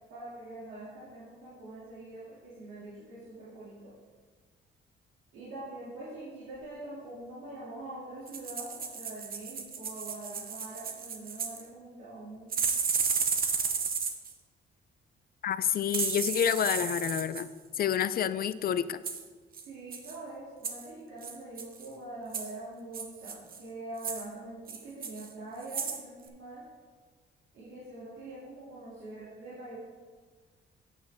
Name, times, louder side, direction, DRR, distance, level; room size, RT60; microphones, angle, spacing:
voice 1, 0.1-3.9 5.3-12.7 19.7-26.6 27.5-29.8, right 2 dB, 90° right, -9 dB, 2.6 m, -44 dB
sound 1, 8.3-11.6 12.5-14.3 15.9-17.4 19.0-19.2 19.5-19.7 19.9-20.2 20.6-20.9 21.2-21.9 22.3-22.5 22.9-23.6 24.0-24.3 24.7-25.3 25.6-26.0 26.3-26.4, right 5 dB, 50° right, 1.0 m, -33 dB
voice 2, 15.4-17.5 17.8-19.0, left 9 dB, 50° left, 14 dB, 0.4 m, -28 dB
8.4 x 8.3 x 3.6 m, 1.4 s
cardioid pair, 90°, 20 cm